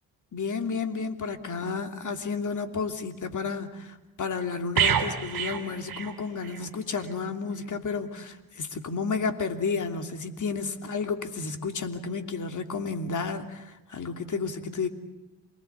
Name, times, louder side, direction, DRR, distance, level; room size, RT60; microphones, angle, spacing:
voice 1, 0.3-14.9, left 4 dB, 45° left, 6 dB, 3.0 m, -32 dB
sound 1, 4.8-6.7 7.0-7.2, right 8 dB, 55° right, 2.8 m, -28 dB
28.0 x 19.5 x 8.4 m, 1.0 s
hypercardioid pair, 55°, 41 cm